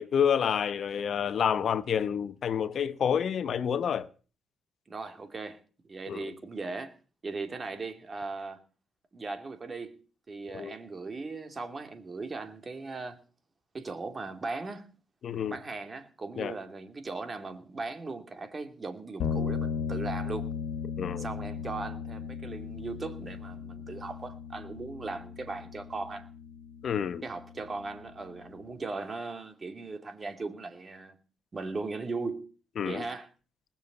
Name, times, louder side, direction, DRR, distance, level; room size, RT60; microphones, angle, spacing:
voice 1, 0.0-4.1 6.1-6.3 10.5-10.7 15.2-15.6 16.4-16.5 21.0-21.2 26.8-27.2 32.8-33.0, left 8 dB, 55° left, 1.0 m, -28 dB
voice 2, 4.9-5.6 5.9-7.0 7.2-8.6 9.1-10.0 10.3-13.2 13.7-15.0 15.5-20.5 21.1-26.3 27.2-31.1 31.5-32.5 32.8-33.3, right 3 dB, 30° right, 2.7 m, -38 dB
sound 1, 19.2-28.7, left 6 dB, 85° left, 1.7 m, -37 dB
20.0 x 7.1 x 8.2 m
cardioid pair, 90°, 0 cm